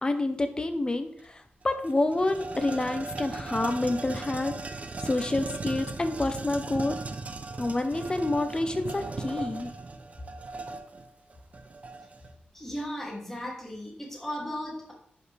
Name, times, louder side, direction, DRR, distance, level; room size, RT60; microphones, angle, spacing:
voice 1, 0.0-4.5 5.0-7.0 7.6-9.7, left 2 dB, 25° left, 8 dB, 0.9 m, -28 dB
sound 1, 1.2-1.3 1.6-12.3, right 3 dB, 45° right, 0.7 m, -38 dB
voice 2, 12.5-14.9, equal, 10° left, -3 dB, 2.7 m, -36 dB
11.0 x 5.3 x 3.4 m, 0.65 s
wide cardioid pair, 100°, 3 cm